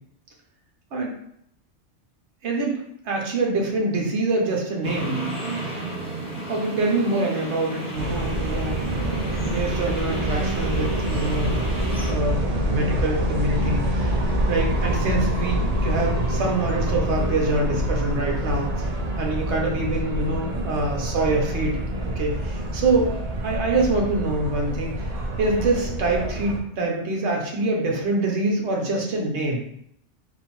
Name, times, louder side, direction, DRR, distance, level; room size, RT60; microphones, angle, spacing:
voice 1, 2.4-5.3 6.5-11.6 12.1-14.2 14.5-18.9 19.2-21.8 22.2-23.1 23.4-25.1 25.4-29.6, right 2 dB, 65° right, 0 dB, 1.2 m, -25 dB
sound 1, 4.8-12.1, right 2 dB, 5° right, 0.9 m, -33 dB
sound 2, 7.9-26.6, right 1 dB, 45° right, 0.5 m, -26 dB
3.6 x 2.5 x 4.3 m, 0.71 s
omnidirectional pair, 1.3 m